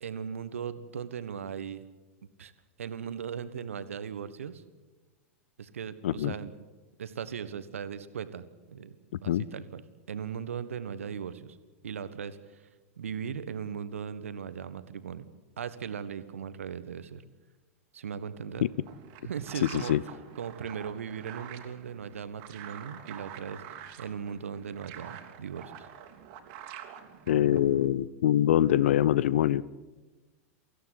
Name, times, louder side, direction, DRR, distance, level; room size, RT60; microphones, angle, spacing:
voice 1, 0.0-1.8 2.4-2.5 2.8-4.6 5.6-6.5 7.0-9.8 10.1-11.6 11.8-12.7 13.0-15.2 15.6-17.2 17.9-18.7 19.2-19.9 20.4-23.6 24.0-25.9, right 7 dB, 70° right, 12 dB, 1.5 m, -38 dB
voice 2, 6.0-6.3 9.3-9.4 18.6-18.7 19.7-20.0 27.3-29.6, left 11 dB, 60° left, 21 dB, 0.6 m, -24 dB
sound 1, 18.6-27.9, right 9 dB, 45° right, 2.8 m, -47 dB
25.0 x 15.5 x 8.2 m, 1.2 s
figure-of-eight pair, 90°, 8 cm